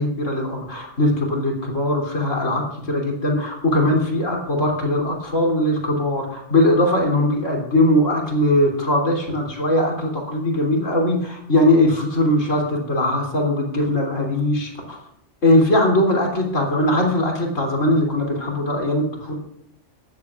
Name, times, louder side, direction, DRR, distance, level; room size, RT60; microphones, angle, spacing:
voice 1, 0.0-15.0 15.4-19.4, left 1 dB, 85° left, 0 dB, 3.5 m, -20 dB
19.0 x 14.0 x 2.5 m, 0.74 s
omnidirectional pair, 1.3 m